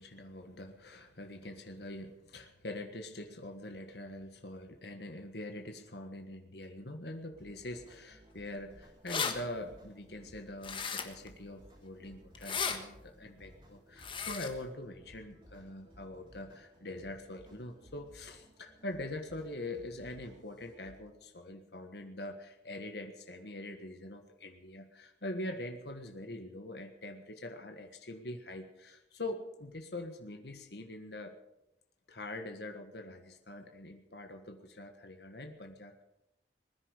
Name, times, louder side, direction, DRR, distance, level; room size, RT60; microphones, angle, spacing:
voice 1, 0.0-31.3 32.1-36.0, left 1 dB, 70° left, 5 dB, 1.6 m, -44 dB
sound 1, 7.3-21.1, equal, 30° right, 7.3 m, -59 dB
sound 2, 8.6-8.7 8.9-9.3 10.6-11.3 12.3-12.8 14.0-14.5, left 6 dB, 30° left, 1.4 m, -34 dB
21.0 x 10.0 x 6.7 m, 0.87 s
head